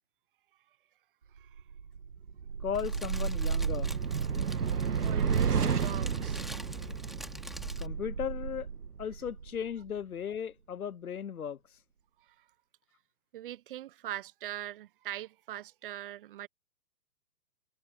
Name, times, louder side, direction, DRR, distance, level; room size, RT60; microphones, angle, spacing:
sound 1, 1.6-10.0, right 6 dB, 75° right, 1.7 m, -32 dB
voice 1, 2.6-3.9 7.8-8.7 9.0-11.6, left 8 dB, 65° left, 1.2 m, -36 dB
Fire, 2.7-7.9, equal, ahead, 3.1 m, -45 dB
voice 2, 5.0-6.5 12.2-12.4 13.3-16.5, right 13 dB, 35° right, 1.1 m, -42 dB
figure-of-eight pair, 130°, 47 cm